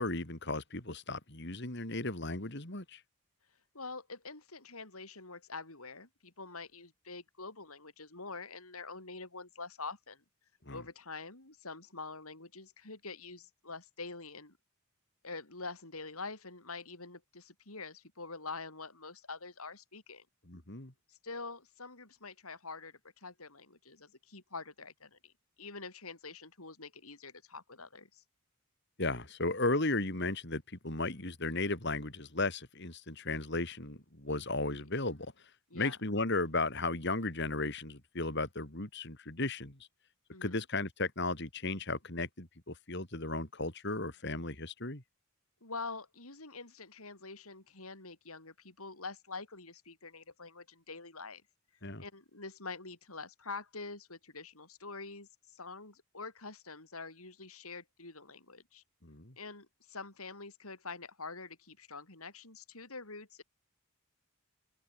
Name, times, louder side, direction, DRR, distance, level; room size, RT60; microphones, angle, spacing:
voice 1, 0.0-3.0 10.7-10.8 20.5-20.9 29.0-35.3 35.7-39.8 40.4-45.0 51.8-52.0 59.0-59.3, left 2 dB, 50° left, 3.7 m, -35 dB
voice 2, 3.7-10.2 10.7-14.6 15.2-20.3 21.1-25.3 25.6-28.2 34.7-34.8 35.7-36.0 40.3-40.6 45.6-51.4 52.0-58.8 59.4-63.4, left 4 dB, 80° left, 5.4 m, -46 dB
head